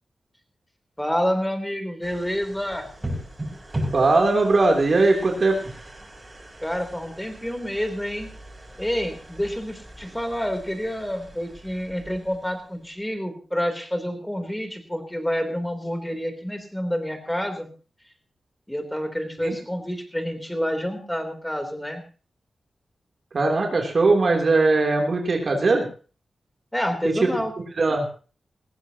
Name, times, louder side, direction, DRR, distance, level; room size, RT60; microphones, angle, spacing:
voice 1, 1.0-2.9 6.6-8.3 8.8-17.7 18.7-22.0 26.7-27.5, equal, 10° left, 6 dB, 3.6 m, -28 dB
sound 1, 2.0-13.1, right 1 dB, 25° right, 6.5 m, -38 dB
voice 2, 3.9-5.6 19.4-19.6 23.3-25.9 27.2-27.3 27.8-28.0, right 3 dB, 60° right, 1 dB, 3.3 m, -19 dB
19.5 x 15.5 x 3.0 m, 0.37 s
cardioid pair, 65°, 0 cm